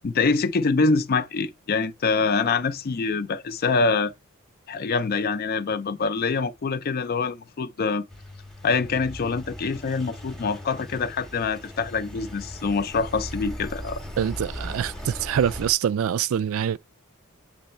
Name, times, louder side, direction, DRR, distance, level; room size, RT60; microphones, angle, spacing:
voice 1, 0.0-4.1 4.7-8.1 8.6-14.0, left 4 dB, 45° left, 0.5 m, -25 dB
Engine, 8.1-15.7, equal, ahead, 0.9 m, -38 dB
voice 2, 14.2-16.8, right 9 dB, 70° right, 0.3 m, -25 dB
7.8 x 3.1 x 4.3 m
head